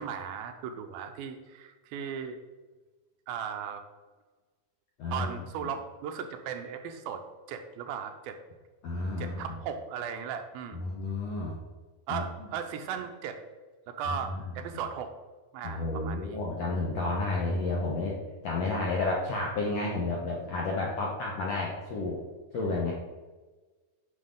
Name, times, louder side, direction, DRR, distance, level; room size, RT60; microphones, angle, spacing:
voice 1, 0.0-2.4 3.3-3.8 5.1-8.4 9.2-10.9 12.1-13.4 13.9-15.1 15.5-16.4, right 7 dB, 85° right, 6 dB, 2.5 m, -37 dB
voice 2, 5.0-5.4 5.6-5.7 8.8-9.6 10.7-11.6 12.1-12.5 14.1-14.4 15.6-18.2 18.4-22.2 22.5-22.9, left 2 dB, 70° left, -3 dB, 1.5 m, -31 dB
9.6 x 6.3 x 3.8 m, 1.3 s
omnidirectional pair, 4.4 m